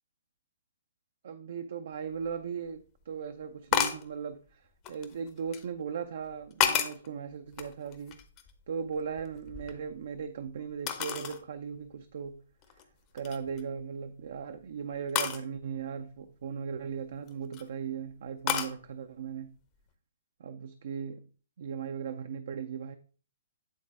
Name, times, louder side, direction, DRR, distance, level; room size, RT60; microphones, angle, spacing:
voice 1, 1.2-8.2 8.7-12.4 13.1-19.6 20.4-21.3 21.6-23.0, right 6 dB, 55° right, 0.4 m, -38 dB
sound 1, 2.2-2.3 3.7-4.1 4.8-5.6 6.3-7.1 7.5-8.6 8.9-10.2 10.9-11.4 11.9-12.0 12.6-12.8 13.2-13.6 15.2-15.4 17.1-17.6 18.5-18.8, left 9 dB, 30° left, 0.7 m, -31 dB
8.8 x 3.9 x 3.6 m
figure-of-eight pair, 120°, 0 cm